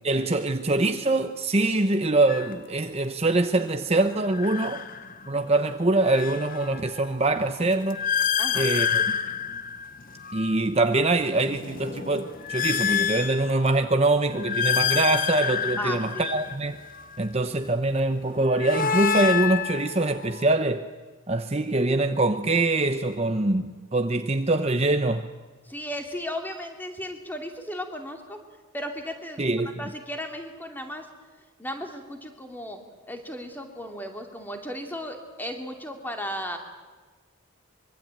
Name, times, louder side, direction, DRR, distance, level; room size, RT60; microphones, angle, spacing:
voice 1, 0.0-4.8 5.3-8.0 8.5-9.0 10.3-16.8 17.2-20.9 21.3-25.3 29.4-29.7, right 2 dB, 30° right, 7 dB, 0.9 m, -24 dB
sound 1, 2.3-2.5 4.2-5.4 5.8-10.7 11.2-13.9 14.3-17.3 18.3-20.5, left 7 dB, 40° left, 0.9 m, -29 dB
voice 2, 8.4-8.7 15.8-16.3 25.6-28.4 28.7-29.5 29.8-31.1 31.6-32.8 33.1-36.6, equal, 10° left, 4 dB, 2.8 m, -35 dB
25.0 x 23.5 x 9.1 m, 1.3 s
head